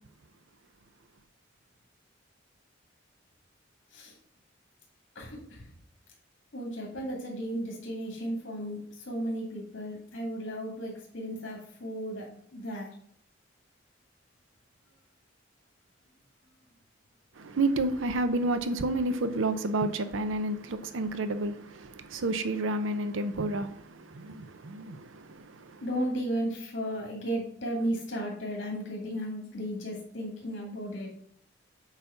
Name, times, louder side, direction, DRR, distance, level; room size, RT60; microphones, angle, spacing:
voice 1, 5.1-5.6 6.5-12.9 25.8-31.1, equal, 60° left, -2 dB, 2.2 m, -34 dB
voice 2, 17.3-25.9, right 2 dB, 80° right, 10 dB, 0.6 m, -30 dB
8.1 x 4.0 x 5.7 m, 0.65 s
head